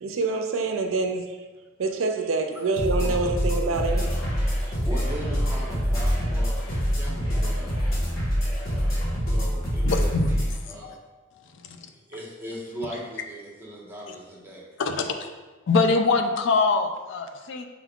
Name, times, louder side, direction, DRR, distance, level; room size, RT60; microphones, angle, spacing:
voice 1, 0.0-1.2 1.8-4.1, right 3 dB, 75° right, 5 dB, 0.4 m, -26 dB
sound 1, 2.8-10.6, equal, 80° left, 1.3 m, -25 dB
Singing / Crowd, 3.6-9.3, left 1 dB, 20° left, 0.9 m, -44 dB
voice 2, 4.8-7.7 9.3-10.9 12.1-14.6 14.9-15.1, right 1 dB, 10° right, -4 dB, 0.9 m, -38 dB
voice 3, 9.8-10.3 10.8-11.0 11.6-11.9 14.8-15.2 15.7-17.6, left 3 dB, 60° left, 5 dB, 0.4 m, -23 dB
4.9 x 2.3 x 3.5 m, 1.2 s
head